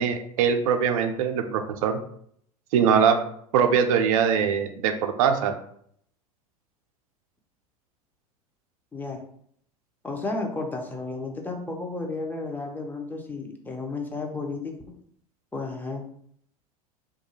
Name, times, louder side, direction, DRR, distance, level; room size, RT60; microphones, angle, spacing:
voice 1, 0.0-2.0 2.7-3.2 3.5-5.5, right 7 dB, 60° right, 6 dB, 0.4 m, -22 dB
voice 2, 8.9-9.2 10.0-14.8 15.5-16.1, left 3 dB, 10° left, 1 dB, 0.5 m, -32 dB
2.3 x 2.2 x 3.0 m, 0.66 s
figure-of-eight pair, 80°, 19 cm